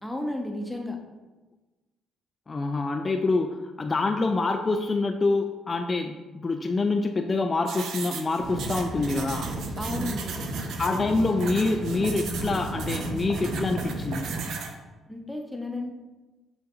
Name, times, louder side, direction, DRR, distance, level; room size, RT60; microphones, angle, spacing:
voice 1, 0.0-1.0 9.8-10.3 15.1-15.9, left 1 dB, 5° left, 2 dB, 0.8 m, -33 dB
voice 2, 2.5-9.5 10.8-14.3, left 3 dB, 35° left, 5 dB, 0.3 m, -26 dB
sound 1, 7.7-14.7, right 5 dB, 70° right, 0.5 m, -38 dB
sound 2, 8.4-14.4, right 2 dB, 40° right, 1.4 m, -33 dB
6.5 x 2.6 x 2.5 m, 1.2 s
hypercardioid pair, 55°, 0 cm